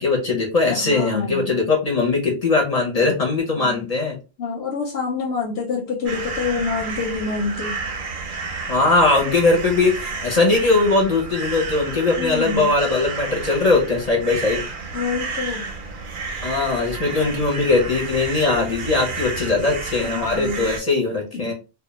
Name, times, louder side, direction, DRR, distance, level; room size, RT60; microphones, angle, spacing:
voice 1, 0.0-4.1 8.7-14.6 16.4-21.5, left 3 dB, 45° left, -1 dB, 0.6 m, -20 dB
voice 2, 0.7-1.6 3.6-3.8 4.4-7.8 12.2-12.8 14.9-15.7 17.2-17.4 20.0-20.7 21.3-21.5, left 4 dB, 90° left, -1 dB, 0.9 m, -27 dB
sound 1, 6.1-20.8, right 4 dB, 60° right, 0.7 m, -31 dB
2.2 x 2.1 x 2.9 m, 0.32 s
omnidirectional pair, 1.1 m